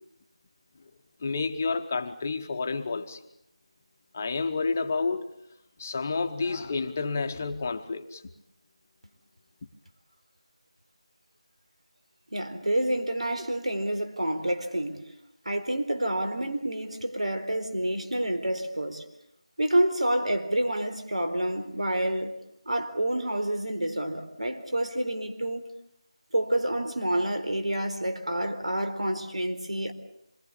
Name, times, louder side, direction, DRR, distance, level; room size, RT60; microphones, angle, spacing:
voice 1, 1.2-3.2 4.1-5.3 5.8-8.2, left 4 dB, 20° left, 1.0 m, -30 dB
voice 2, 12.3-15.0 15.4-19.0 19.6-22.3 22.7-25.7 26.3-29.9, right 1 dB, 90° right, 4.3 m, -28 dB
26.5 x 22.0 x 8.5 m
figure-of-eight pair, 175°, 3 cm